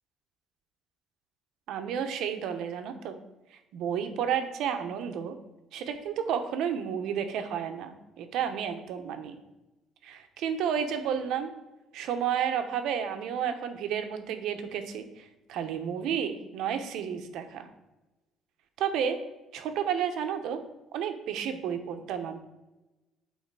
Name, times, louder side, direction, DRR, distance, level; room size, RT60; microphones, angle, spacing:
voice 1, 1.7-3.2 3.7-5.4 5.7-9.4 10.0-11.5 11.9-17.7 18.8-19.2 19.5-20.6 20.9-22.4, right 8 dB, 75° right, 7 dB, 0.9 m, -31 dB
8.2 x 4.0 x 4.7 m, 1.0 s
cardioid pair, 120°, 0 cm